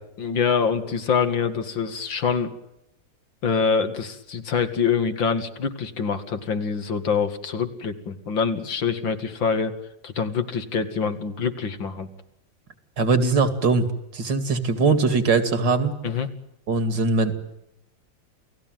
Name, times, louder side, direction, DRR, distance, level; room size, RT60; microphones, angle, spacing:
voice 1, 0.2-2.5 3.4-9.7 10.0-12.1 16.0-16.3, left 6 dB, 80° left, 8 dB, 2.9 m, -25 dB
voice 2, 13.0-13.9 14.1-15.9 16.7-17.3, right 4 dB, 65° right, 10 dB, 3.0 m, -21 dB
29.0 x 18.0 x 9.2 m, 0.83 s
omnidirectional pair, 2.0 m